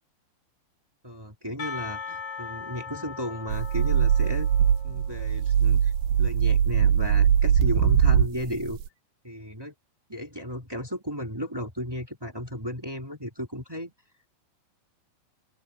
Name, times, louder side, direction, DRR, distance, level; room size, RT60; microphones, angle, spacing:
voice 1, 1.0-4.5 4.8-8.8 9.2-9.7 10.1-13.9, equal, 15° right, 0.7 m, -34 dB
Percussion, 1.6-5.5, left 5 dB, 35° left, 8.7 m, -39 dB
sound 1, 3.5-8.9, right 8 dB, 65° right, 2.6 m, -21 dB
open air
omnidirectional pair, 5.9 m